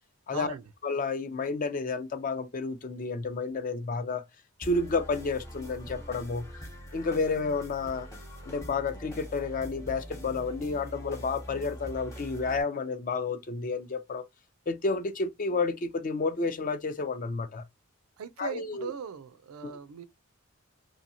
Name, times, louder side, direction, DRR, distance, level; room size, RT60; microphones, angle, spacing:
voice 1, 0.3-0.7 18.2-20.0, right 6 dB, 80° right, 0.4 m, -39 dB
voice 2, 0.8-4.2 4.6-6.5 6.9-8.1 8.4-14.2 14.7-17.6 18.4-18.9 19.6-19.8, left 4 dB, 35° left, 0.4 m, -31 dB
sound 1, 4.6-12.6, equal, 15° left, 0.9 m, -43 dB
2.8 x 2.7 x 2.7 m
head